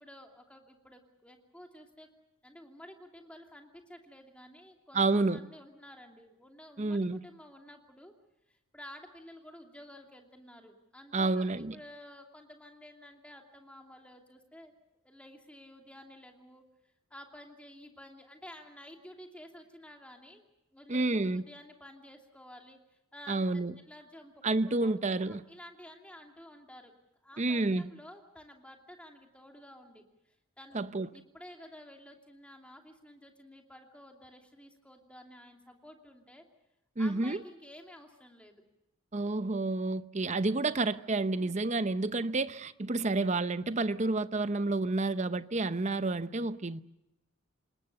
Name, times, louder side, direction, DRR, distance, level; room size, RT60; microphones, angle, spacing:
voice 1, 0.0-2.1 2.4-8.1 8.5-14.7 15.0-16.6 17.1-20.5 20.7-23.5 23.9-24.3 24.6-26.9 27.2-30.8 31.1-36.4 37.0-38.6 41.4-41.6, left 1 dB, 5° left, 2.7 m, -52 dB
voice 2, 4.9-5.4 6.8-7.2 11.1-11.8 20.9-21.4 23.3-23.7 24.4-25.4 27.4-27.9 30.7-31.1 37.0-37.4 39.1-46.8, right 2 dB, 30° right, 0.7 m, -29 dB
27.0 x 20.5 x 6.7 m
head